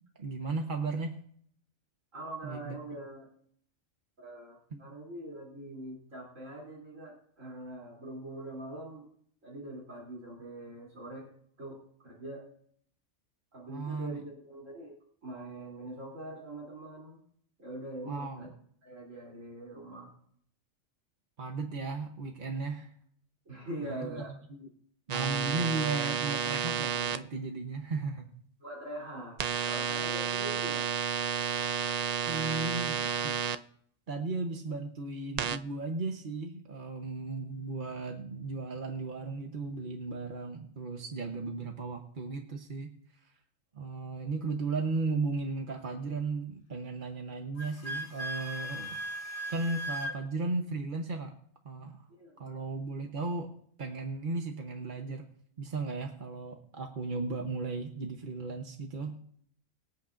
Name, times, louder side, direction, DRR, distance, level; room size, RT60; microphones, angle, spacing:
voice 1, 0.2-1.1 2.4-2.8 4.7-4.8 13.7-14.2 18.1-18.5 21.4-22.9 23.8-24.2 24.5-24.7 25.1-28.3 32.3-33.3 34.1-42.9 43.2-43.3 43.7-49.0 49.5-51.3 51.6-52.0 52.4-53.5 53.8-55.2 55.6-59.2, right 3 dB, 40° right, 3 dB, 1.1 m, -35 dB
voice 2, 2.1-3.3 4.2-9.1 9.4-11.3 11.6-12.4 13.5-17.2 17.6-18.5 18.8-20.1 23.5-24.3 28.6-29.4 29.6-31.0 52.1-52.6, right 1 dB, 75° right, -4 dB, 3.6 m, -43 dB
sound 1, 25.1-27.2 29.4-33.5 35.4-35.6, right 7 dB, 90° right, 0.3 m, -31 dB
Wind instrument woodwind instrument, 47.6-50.2, right 1 dB, 45° left, 1.6 m, -37 dB
25.0 x 8.5 x 2.6 m, 0.62 s
omnidirectional pair, 1.4 m